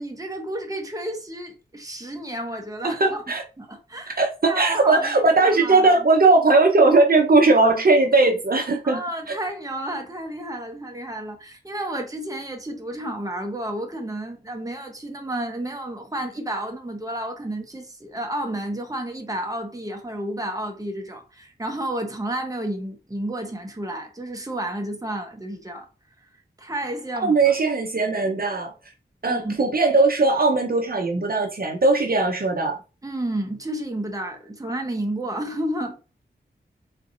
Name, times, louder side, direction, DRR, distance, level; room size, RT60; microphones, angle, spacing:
voice 1, 0.0-3.2 3.6-5.1 5.4-6.0 8.8-25.9 26.6-27.4 29.2-29.6 33.0-36.0, right 1 dB, 20° right, 1.0 m, -31 dB
voice 2, 2.8-3.4 4.2-9.0 27.2-28.7 29.2-32.8, right 3 dB, 55° right, 0.8 m, -19 dB
3.9 x 3.3 x 2.6 m
wide cardioid pair, 55°, 18 cm